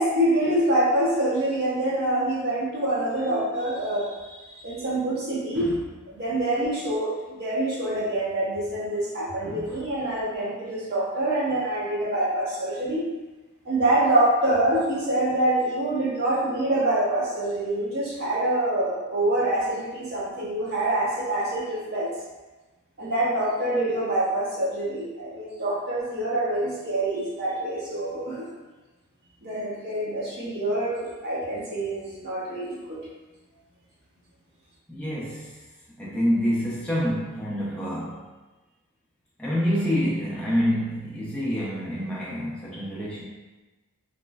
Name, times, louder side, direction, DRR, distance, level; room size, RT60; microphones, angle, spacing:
voice 1, 0.0-4.4 4.6-5.7 6.1-13.0 13.6-22.1 23.0-28.4 29.4-33.0, right 1 dB, 45° right, -7 dB, 0.7 m, -25 dB
voice 2, 9.4-9.9 34.9-35.6 36.0-38.2 39.4-43.2, equal, 5° left, -8 dB, 0.4 m, -27 dB
3.0 x 2.1 x 2.3 m, 1.2 s
head